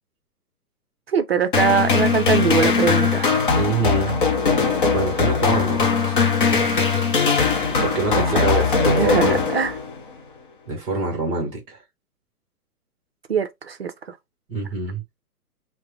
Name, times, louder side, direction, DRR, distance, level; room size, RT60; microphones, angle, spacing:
voice 1, 1.1-3.3 8.1-8.4 9.0-9.7 13.3-13.9, right 6 dB, 45° right, 0.5 m, -22 dB
sound 1, 1.5-10.0, left 5 dB, 35° left, 0.7 m, -20 dB
voice 2, 3.5-4.2 4.9-6.3 6.5-7.0 7.8-9.5 10.7-11.8 14.5-15.0, right 3 dB, 10° right, 0.8 m, -26 dB
4.7 x 2.1 x 2.8 m
figure-of-eight pair, 125°, 46 cm